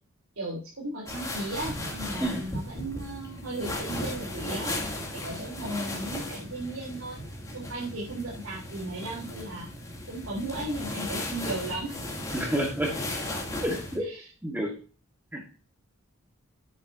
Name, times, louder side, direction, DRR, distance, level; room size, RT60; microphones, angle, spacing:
voice 1, 0.4-4.8 5.1-7.2 7.5-9.7 10.1-12.0 14.0-14.3, right 2 dB, 80° right, -5 dB, 3.7 m, -35 dB
sound 1, 1.1-14.0, left 1 dB, 15° left, 2.8 m, -36 dB
voice 2, 12.3-13.0 13.6-14.0 14.4-14.8 15.3-15.4, equal, 10° right, -1 dB, 1.7 m, -29 dB
11.5 x 9.2 x 2.8 m, 0.37 s
head